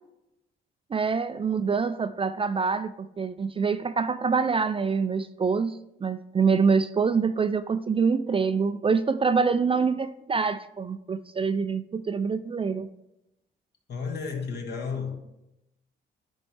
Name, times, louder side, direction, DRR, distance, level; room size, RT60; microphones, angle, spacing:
voice 1, 0.9-12.9, right 5 dB, 25° right, 0.4 m, -25 dB
voice 2, 13.9-15.2, left 5 dB, 55° left, 1.4 m, -32 dB
9.5 x 4.4 x 3.2 m
cardioid pair, 85°, 20 cm